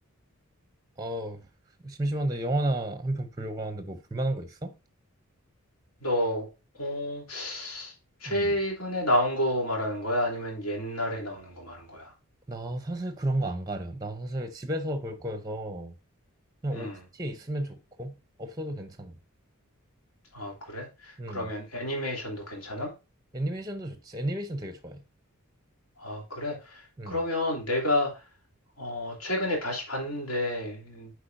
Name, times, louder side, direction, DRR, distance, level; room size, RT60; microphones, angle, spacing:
voice 1, 1.0-1.4 1.8-4.7 8.3-8.5 12.5-15.9 16.6-19.1 21.2-21.5 23.3-25.0 27.0-27.2, right 1 dB, 15° right, 0.6 m, -32 dB
voice 2, 6.0-6.5 6.8-7.9 8.2-12.1 16.7-17.0 20.3-22.9 26.0-28.1 28.8-31.1, left 1 dB, 70° left, 3.1 m, -30 dB
8.5 x 4.7 x 2.5 m
head